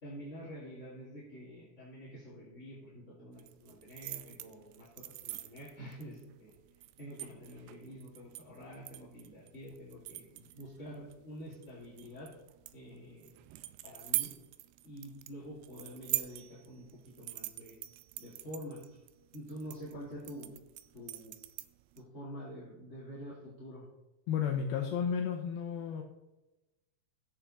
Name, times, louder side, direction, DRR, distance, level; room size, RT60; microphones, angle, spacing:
voice 1, 0.0-6.5 7.0-12.3 12.7-13.4 13.8-14.3 14.8-17.7 18.2-18.8 19.3-20.5 20.9-21.3 22.0-23.8, equal, 20° left, -8 dB, 2.3 m, -47 dB
sound 1, 3.4-22.0, right 17 dB, 85° right, 2.4 m, -43 dB
voice 2, 24.3-26.0, left 7 dB, 75° left, 2 dB, 2.6 m, -32 dB
14.0 x 8.2 x 4.1 m, 1.0 s
omnidirectional pair, 4.6 m